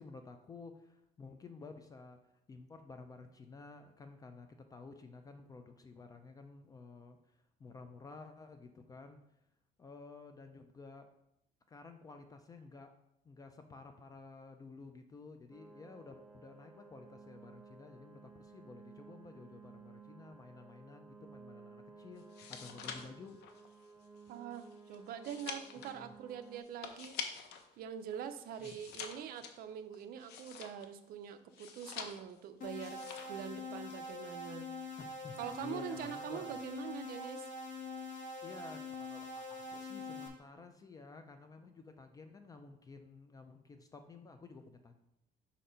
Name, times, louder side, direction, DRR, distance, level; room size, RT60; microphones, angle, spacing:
voice 1, 0.0-2.2 2.5-9.2 9.8-11.1 11.7-12.9 13.2-23.4 26.0-26.1 28.6-28.8 35.0-36.6 38.4-45.0, left 4 dB, 20° left, 7 dB, 0.4 m, -53 dB
sound 1, 15.5-26.6, right 4 dB, ahead, 0.7 m, -56 dB
sound 2, 22.2-27.7 28.0-31.0 31.5-32.4 32.7-33.4 33.7-34.1, left 6 dB, 80° left, 0.7 m, -47 dB
voice 2, 24.3-27.2 27.8-33.0 33.3-34.7 35.4-37.5, right 9 dB, 60° right, 9 dB, 0.6 m, -44 dB
sound 3, 32.6-40.3, left 3 dB, 55° left, 1.3 m, -44 dB
5.1 x 4.3 x 5.1 m, 0.81 s
cardioid pair, 165°, 17 cm